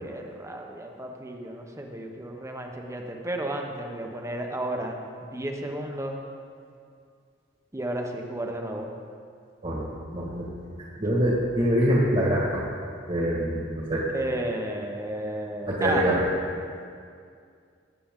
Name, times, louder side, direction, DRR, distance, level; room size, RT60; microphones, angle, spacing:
voice 1, 0.0-6.2 7.7-8.9 14.1-16.2, right 1 dB, 15° right, 2 dB, 1.0 m, -33 dB
voice 2, 10.1-10.5 11.0-12.6 13.1-14.0 15.7-16.2, equal, 30° right, -5 dB, 1.8 m, -24 dB
19.0 x 8.6 x 3.8 m, 2.3 s
head